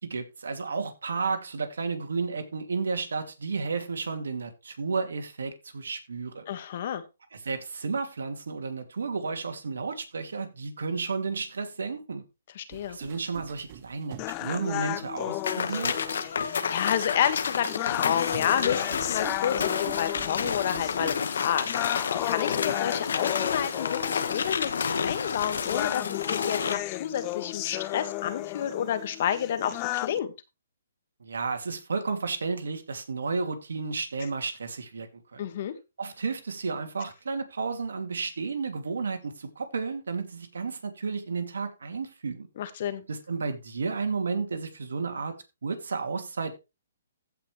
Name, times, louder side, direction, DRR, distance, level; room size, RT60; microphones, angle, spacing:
voice 1, 0.0-6.4 7.3-12.2 12.9-15.9 31.2-35.5 36.0-42.5 43.1-45.3 45.6-46.6, right 4 dB, 80° right, 2.6 m, -32 dB
voice 2, 6.5-7.0 12.5-13.0 16.2-30.3 35.4-35.7 42.6-43.0, left 9 dB, 50° left, 1.7 m, -30 dB
sound 1, 12.7-15.2 15.9-16.0 18.3-21.3, right 10 dB, 40° right, 1.3 m, -45 dB
sound 2, 14.2-30.2, left 21 dB, 30° left, 0.4 m, -35 dB
sound 3, 15.4-26.8, left 6 dB, 70° left, 1.4 m, -30 dB
15.5 x 5.7 x 3.3 m
hypercardioid pair, 145°, 0 cm